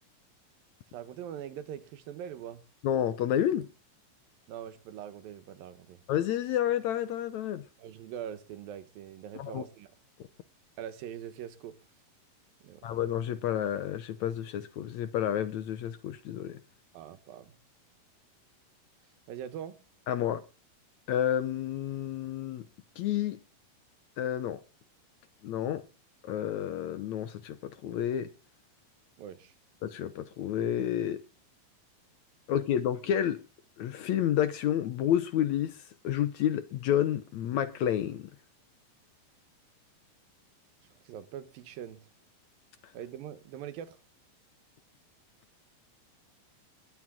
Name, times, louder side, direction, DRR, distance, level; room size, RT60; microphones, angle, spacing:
voice 1, 0.9-2.6 4.5-6.0 7.8-9.9 10.8-11.8 12.6-12.9 16.9-17.6 19.3-19.8 29.2-29.5 40.9-42.0 42.9-44.0, right 10 dB, 85° right, 3.0 m, -42 dB
voice 2, 2.8-3.7 6.1-7.6 9.4-9.6 12.8-16.6 20.1-20.4 21.1-22.6 23.0-23.4 24.2-24.6 25.4-25.8 26.2-28.3 29.8-31.2 32.5-33.4 33.8-38.3, left 10 dB, 70° left, 1.9 m, -30 dB
21.5 x 9.4 x 3.7 m
omnidirectional pair, 4.0 m